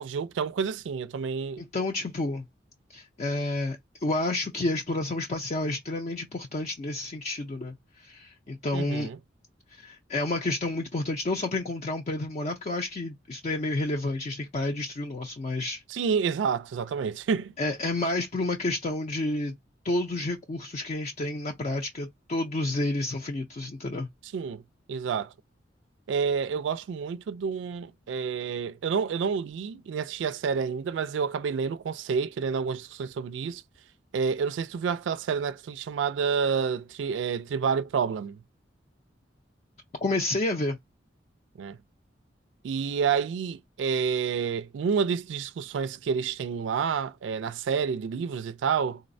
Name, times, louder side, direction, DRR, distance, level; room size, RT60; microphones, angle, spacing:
voice 1, 0.0-1.6 8.7-9.2 15.9-17.5 24.3-24.6 24.9-25.3 26.1-33.6 34.1-38.4 41.6-41.8 42.6-49.0, right 6 dB, 80° right, 0.3 m, -29 dB
voice 2, 1.6-2.4 2.9-9.1 9.7-15.8 17.6-19.5 19.8-24.1 40.0-40.8, left 2 dB, 40° left, 0.5 m, -30 dB
3.9 x 2.0 x 2.5 m
head